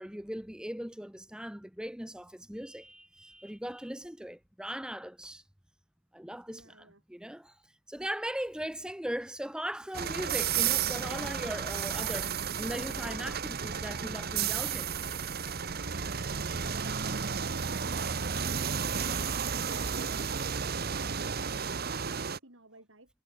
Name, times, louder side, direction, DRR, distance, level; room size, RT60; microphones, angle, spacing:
voice 1, 0.0-5.4 6.1-14.9 20.5-20.7, equal, 5° right, 1.0 m, -39 dB
voice 2, 6.5-7.0 15.7-16.3 16.9-23.1, right 1 dB, 65° right, 6.0 m, -53 dB
sound 1, 9.9-22.4, right 7 dB, 45° right, 1.0 m, -32 dB
head